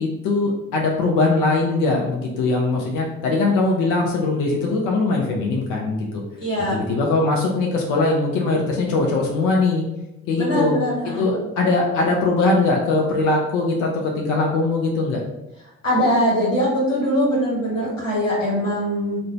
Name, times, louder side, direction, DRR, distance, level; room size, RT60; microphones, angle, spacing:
voice 1, 0.0-6.2 6.7-9.8 10.3-10.7 11.2-15.2, left 3 dB, 55° left, -1 dB, 0.6 m, -21 dB
voice 2, 6.4-6.8 10.3-11.3 15.8-19.2, equal, 85° left, -7 dB, 1.0 m, -21 dB
2.6 x 2.1 x 3.9 m, 0.94 s
figure-of-eight pair, 45°, 37 cm